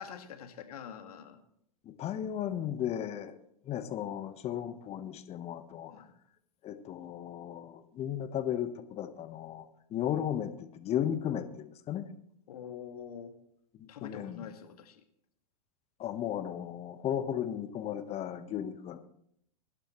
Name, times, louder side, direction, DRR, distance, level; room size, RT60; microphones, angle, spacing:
voice 1, 0.0-1.4 5.9-6.1 12.5-13.3 13.9-15.0, left 8 dB, 65° left, 6 dB, 2.1 m, -45 dB
voice 2, 1.8-3.4 3.7-6.0 6.6-12.1 13.7-14.5 16.0-19.0, left 10 dB, 30° left, 10 dB, 1.3 m, -35 dB
22.5 x 11.5 x 3.2 m, 0.73 s
hypercardioid pair, 105°, 20 cm